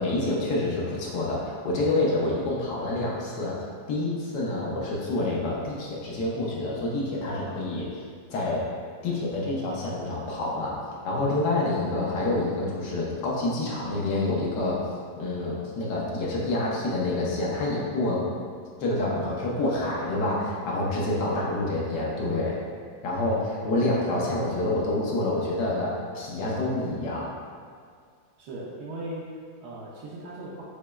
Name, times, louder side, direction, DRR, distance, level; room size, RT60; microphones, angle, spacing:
voice 1, 0.0-3.6 3.9-8.0 8.3-8.7 9.0-10.8 11.0-14.8 15.2-18.2 18.8-22.6 23.0-27.4, left 2 dB, 85° left, -4 dB, 1.4 m, -27 dB
voice 2, 28.4-30.6, right 1 dB, 75° right, -4 dB, 1.2 m, -38 dB
6.4 x 3.0 x 2.3 m, 2.1 s
omnidirectional pair, 1.8 m